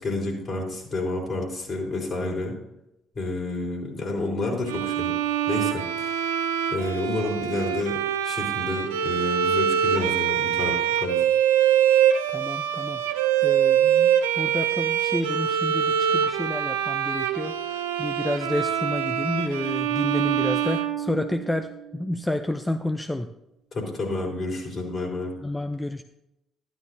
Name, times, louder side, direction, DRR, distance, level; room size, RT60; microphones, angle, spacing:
voice 1, 0.0-2.5 3.1-5.1 5.5-6.3 6.7-8.0 8.2-11.2 23.7-25.3, left 2 dB, 45° left, -1 dB, 3.8 m, -29 dB
Bowed string instrument, 4.7-21.7, right 9 dB, 80° right, 0.5 m, -24 dB
voice 2, 12.3-23.3 25.4-26.0, left 1 dB, 10° left, 8 dB, 0.6 m, -30 dB
13.0 x 11.0 x 2.7 m, 0.88 s
hypercardioid pair, 50°, 0 cm